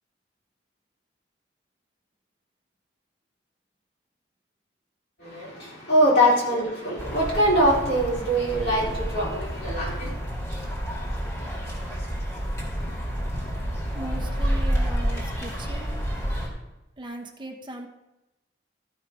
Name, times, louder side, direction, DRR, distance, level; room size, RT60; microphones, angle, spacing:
voice 1, 5.2-10.1, equal, 60° left, -6 dB, 3.5 m, -23 dB
sound 1, 7.0-16.5, equal, 15° left, 2.0 m, -29 dB
voice 2, 13.9-15.9 17.0-17.9, right 1 dB, 25° right, 3 dB, 1.0 m, -38 dB
12.5 x 5.2 x 5.0 m, 0.97 s
head